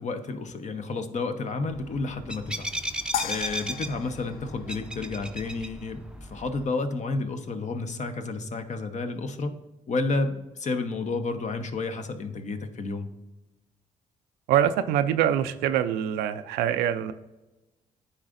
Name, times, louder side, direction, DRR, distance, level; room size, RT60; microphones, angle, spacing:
voice 1, 0.0-2.7 3.2-9.5 9.9-13.1, left 3 dB, 50° left, 7 dB, 0.9 m, -31 dB
sound 1, 1.7-6.6, right 1 dB, 5° right, 0.6 m, -36 dB
sound 2, 3.1-5.5, left 9 dB, 70° left, 0.4 m, -36 dB
voice 2, 14.5-17.1, right 10 dB, 90° right, 11 dB, 0.4 m, -24 dB
9.8 x 3.9 x 2.5 m, 1.0 s
supercardioid pair, 60°, 16 cm